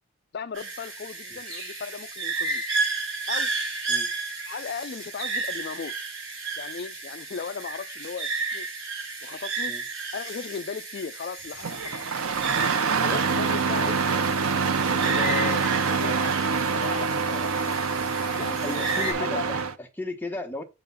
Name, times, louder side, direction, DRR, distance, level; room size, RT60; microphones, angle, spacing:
voice 1, 0.3-2.6 3.3-3.5 4.5-5.9 6.6-8.7 9.2-9.7 10.1-11.9 13.0-14.0 14.9-15.6 15.9-17.7 18.3-19.5, left 6 dB, 50° left, 0.3 m, -36 dB
sound 1, 0.5-19.1, right 3 dB, 60° right, 4.6 m, -33 dB
Engine starting, 11.6-19.7, right 5 dB, 90° right, 0.7 m, -25 dB
voice 2, 18.6-20.6, left 2 dB, 10° left, 0.9 m, -35 dB
8.3 x 3.8 x 5.4 m
head